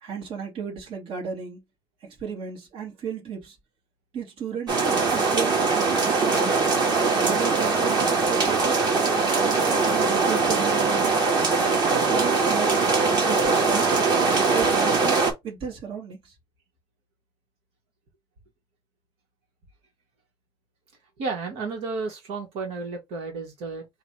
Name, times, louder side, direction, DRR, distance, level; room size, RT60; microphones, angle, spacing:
voice 1, 0.0-1.6 2.0-3.6 4.1-6.6 7.1-8.8 9.4-11.4 12.0-15.2 15.4-16.3, right 6 dB, 60° right, 2.0 m, -34 dB
sound 1, 4.7-15.3, right 4 dB, 45° right, 1.8 m, -22 dB
voice 2, 21.2-23.9, right 4 dB, 85° right, 1.6 m, -32 dB
3.8 x 2.7 x 4.6 m
cardioid pair, 130°, 10 cm